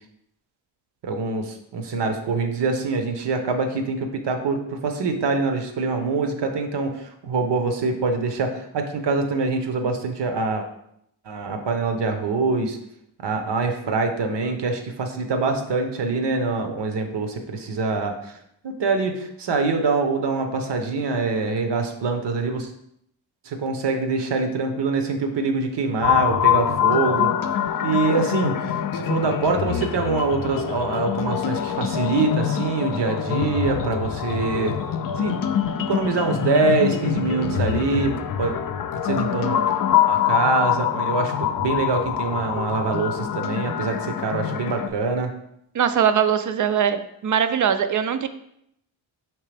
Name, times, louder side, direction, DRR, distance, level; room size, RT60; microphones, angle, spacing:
voice 1, 1.0-10.7 11.2-12.8 13.2-18.4 18.6-22.7 23.4-27.3 27.8-34.7 35.2-35.4 35.9-38.5 39.0-39.6 40.1-45.3, right 3 dB, 60° right, 5 dB, 0.9 m, -24 dB
sound 1, 26.0-44.9, left 10 dB, 50° left, 0.4 m, -25 dB
voice 2, 45.7-48.3, right 8 dB, 45° right, 11 dB, 0.4 m, -21 dB
4.6 x 3.2 x 3.3 m, 0.75 s
cardioid pair, 65°, 46 cm